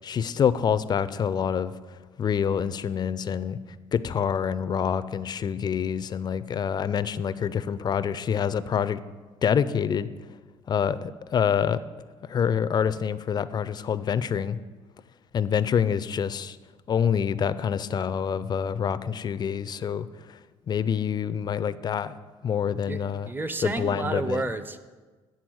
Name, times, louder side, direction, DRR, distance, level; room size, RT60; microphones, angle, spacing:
voice 1, 0.0-3.6 3.9-9.0 9.4-10.1 10.7-11.8 12.2-14.6 15.3-16.6 16.9-20.4 20.7-22.2 22.4-23.3 23.6-24.4, left 7 dB, 35° left, 15 dB, 0.4 m, -26 dB
voice 2, 22.9-24.9, right 2 dB, 15° right, 11 dB, 0.6 m, -31 dB
9.4 x 4.0 x 6.2 m, 1.3 s
cardioid pair, 90°, 12 cm